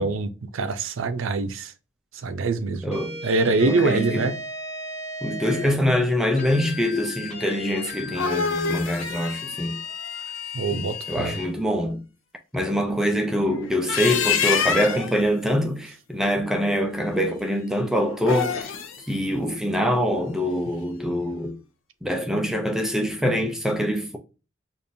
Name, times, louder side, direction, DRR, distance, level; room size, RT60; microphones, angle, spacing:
voice 1, 0.0-1.7 2.1-3.0 3.2-4.3 10.5-11.4, right 3 dB, 85° right, 0.5 m, -24 dB
voice 2, 2.8-3.2 3.6-4.3 5.2-9.8 10.7-12.0 12.5-18.7 19.1-21.6 22.0-24.2, equal, ahead, 0.4 m, -24 dB
sound 1, 2.9-5.8 6.4-11.5, left 2 dB, 35° left, 0.8 m, -36 dB
sound 2, 7.9-11.0 13.7-15.2 18.1-19.0, left 6 dB, 80° left, 0.6 m, -27 dB
5.1 x 2.5 x 2.6 m
head